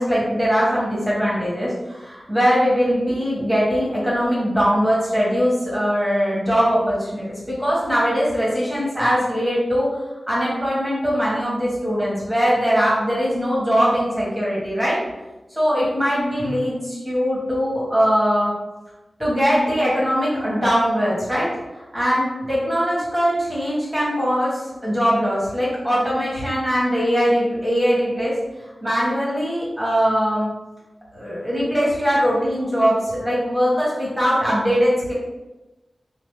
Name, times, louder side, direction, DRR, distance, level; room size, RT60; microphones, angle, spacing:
voice 1, 0.0-9.9 10.3-15.0 15.5-18.5 19.2-21.5 21.9-28.4 28.8-30.5 31.1-35.1, equal, 15° right, -7 dB, 1.3 m, -21 dB
2.9 x 2.1 x 3.1 m, 1.1 s
wide cardioid pair, 65°, 0 cm